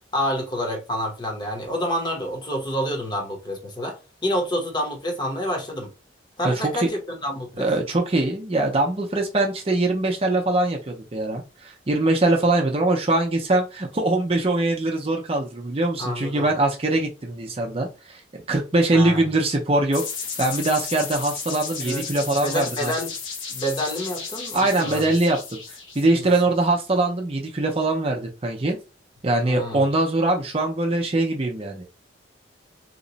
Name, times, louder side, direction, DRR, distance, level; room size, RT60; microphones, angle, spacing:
voice 1, 0.1-4.0 4.2-5.9 6.4-7.7 16.0-16.5 18.9-19.2 21.8-22.0 22.4-23.1 23.5-25.1 26.1-26.3 29.5-29.8, equal, 25° left, 0.8 m, -28 dB
voice 2, 6.4-6.9 7.6-20.0 20.4-22.9 24.5-28.8 29.2-31.8, right 2 dB, 30° right, 0.6 m, -22 dB
sound 1, 19.9-26.6, left 5 dB, 80° left, 1.0 m, -34 dB
2.9 x 2.2 x 3.9 m
head